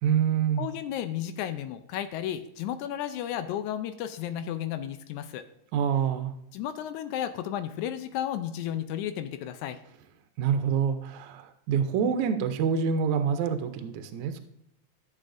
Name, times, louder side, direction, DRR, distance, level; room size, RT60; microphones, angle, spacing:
voice 1, 0.0-0.7 5.7-6.3 10.4-14.4, right 7 dB, 80° right, 8 dB, 2.0 m, -26 dB
voice 2, 0.6-5.4 6.5-9.8, left 10 dB, 85° left, 9 dB, 2.0 m, -33 dB
14.0 x 7.3 x 2.6 m, 0.78 s
omnidirectional pair, 3.4 m